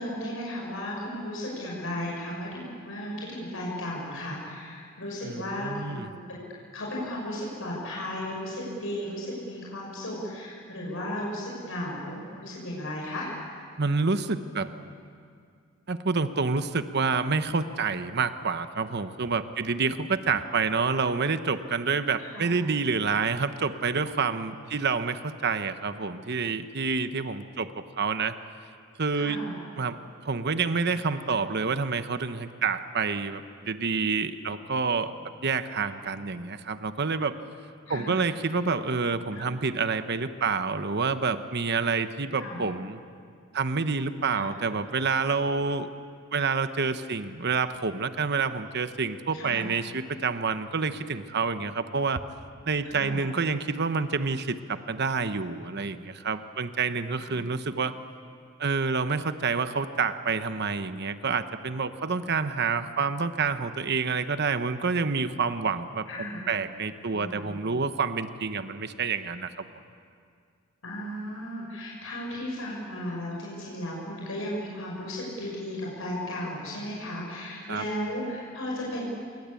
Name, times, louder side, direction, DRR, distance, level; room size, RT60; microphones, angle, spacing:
voice 1, 0.0-13.3 22.2-22.5 29.1-29.6 37.9-38.2 39.3-39.4 42.4-42.6 44.3-44.5 49.3-49.6 52.9-53.2 57.2-57.3 66.1-66.4 67.1-67.6 70.8-79.1, left 1 dB, 75° left, -3 dB, 6.1 m, -35 dB
voice 2, 5.2-6.1 13.8-14.7 15.9-28.3 29.0-29.4 29.8-30.0 30.2-35.1 35.4-37.3 37.9-43.0 43.5-45.9 46.3-52.2 52.7-57.9 58.6-66.0 66.5-69.6 77.7-77.8, right 4 dB, 55° right, 10 dB, 1.1 m, -28 dB
27.0 x 23.0 x 8.5 m, 2.2 s
head